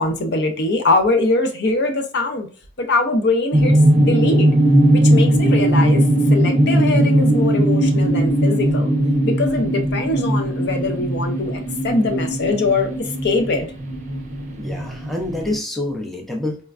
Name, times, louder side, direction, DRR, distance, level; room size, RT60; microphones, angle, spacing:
voice 1, 0.0-2.5 2.8-4.5 4.9-6.0 6.3-8.9 9.2-13.7, left 2 dB, 60° left, 0.6 m, -22 dB
sound 1, 3.5-15.6, right 1 dB, 40° right, 0.6 m, -18 dB
voice 2, 14.6-16.6, left 1 dB, ahead, 0.6 m, -27 dB
4.2 x 2.2 x 2.4 m
head